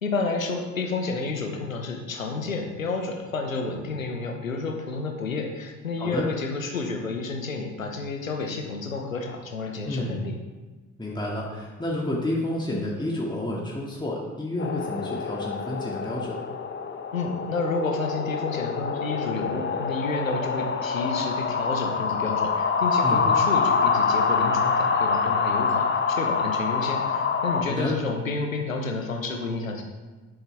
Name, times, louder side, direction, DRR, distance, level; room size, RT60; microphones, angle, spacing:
voice 1, 0.0-10.3 17.1-29.8, left 3 dB, 90° left, 3 dB, 0.9 m, -30 dB
voice 2, 9.8-10.2 11.0-16.4 23.0-23.3 27.7-27.9, left 1 dB, 10° left, -4 dB, 2.2 m, -30 dB
sound 1, 14.6-27.6, left 5 dB, 30° left, 1.0 m, -26 dB
11.5 x 8.0 x 3.5 m, 1.3 s
figure-of-eight pair, 45°, 39 cm